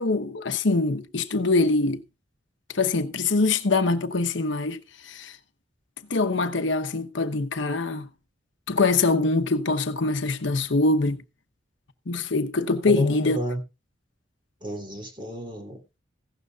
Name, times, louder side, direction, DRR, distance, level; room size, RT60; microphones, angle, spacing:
voice 1, 0.0-2.0 2.7-5.4 6.1-8.1 8.7-11.2 12.1-13.4, left 3 dB, 80° left, 1.0 m, -24 dB
voice 2, 12.8-13.6 14.6-16.0, right 1 dB, 25° right, 3.0 m, -33 dB
16.0 x 12.0 x 2.4 m
head